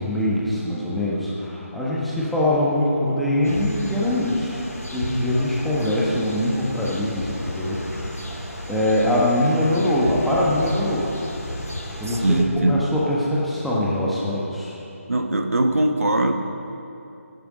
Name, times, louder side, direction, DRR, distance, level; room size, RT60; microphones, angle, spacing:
voice 1, 0.0-4.6 4.9-8.3 8.7-11.2 12.0-14.7, left 1 dB, ahead, -8 dB, 1.4 m, -23 dB
sound 1, 3.4-12.5, left 1 dB, 85° left, 2.5 m, -33 dB
voice 2, 12.1-12.8 15.1-16.3, right 2 dB, 70° right, 6 dB, 1.2 m, -21 dB
16.0 x 10.5 x 5.1 m, 2.8 s
figure-of-eight pair, 150°, 8 cm